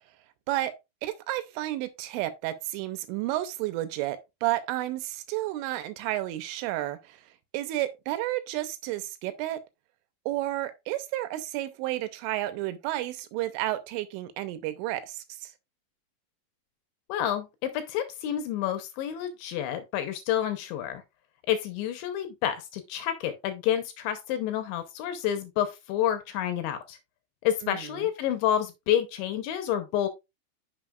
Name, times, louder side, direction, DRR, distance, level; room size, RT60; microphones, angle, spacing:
voice 1, 1.0-7.2 7.5-9.6 10.3-15.5 27.6-28.1, right 15 dB, 85° right, 3.2 m, -31 dB
voice 2, 17.1-21.0 21.5-27.0 27.4-30.1, left 10 dB, 80° left, 3.0 m, -29 dB
9.6 x 7.0 x 2.4 m
omnidirectional pair, 5.8 m